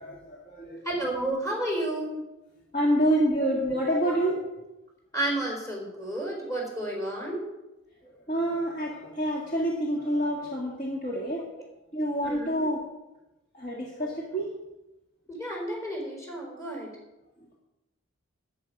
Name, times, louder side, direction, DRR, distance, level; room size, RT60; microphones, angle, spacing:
voice 1, 0.0-0.9 2.7-4.4 8.0-11.5 11.9-12.8 13.5-14.5, right 1 dB, 40° left, -3 dB, 1.8 m, -27 dB
voice 2, 0.8-2.2 3.4-3.5 4.1-4.2 5.1-7.4 11.1-11.2 12.2-12.7 14.0-14.1 15.3-16.9, right 1 dB, 15° left, -1 dB, 4.3 m, -31 dB
13.5 x 9.3 x 5.3 m, 0.98 s
head